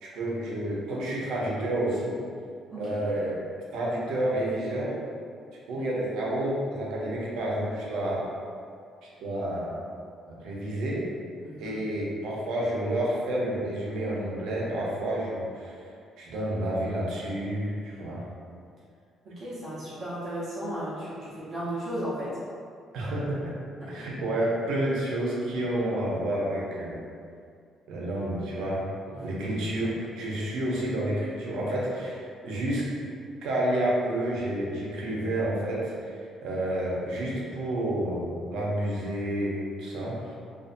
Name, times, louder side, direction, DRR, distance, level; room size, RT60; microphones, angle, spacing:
voice 1, 0.0-2.2 2.8-3.4 3.7-4.9 5.7-8.3 9.2-9.8 10.3-11.1 11.6-15.8 16.2-18.2 22.9-23.6 23.9-27.0 27.9-28.9 29.1-32.9 33.4-40.3, right 1 dB, 80° right, -5 dB, 0.6 m, -30 dB
voice 2, 11.4-11.8 19.2-22.3 23.8-24.0 29.1-29.4, right 1 dB, 40° right, -10 dB, 0.7 m, -35 dB
2.5 x 2.4 x 2.5 m, 2.3 s
cardioid pair, 165°, 0 cm